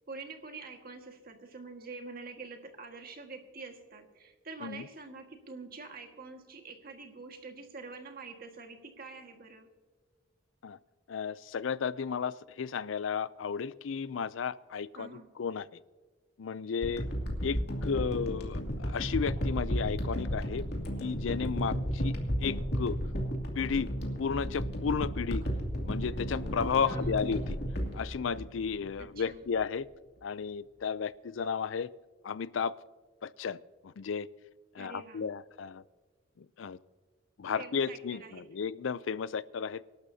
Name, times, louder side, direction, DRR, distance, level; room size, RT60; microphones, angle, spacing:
voice 1, 0.1-9.7 14.9-15.3 26.8-27.3 29.0-29.4 34.8-35.3 37.6-38.4, right 4 dB, 50° right, 4 dB, 1.7 m, -46 dB
voice 2, 11.1-15.1 15.4-15.7 16.4-17.1 17.4-20.6 21.0-23.0 23.6-23.9 24.2-25.4 25.8-27.6 27.9-29.9 30.2-31.9 32.2-32.7 33.2-33.6 33.8-34.3 34.7-35.8 36.4-36.8 37.4-39.8, left 6 dB, 85° left, 18 dB, 0.4 m, -33 dB
sound 1, 16.8-29.0 29.6-29.7, equal, 60° left, 2.5 m, -33 dB
25.0 x 12.0 x 2.8 m, 1.4 s
head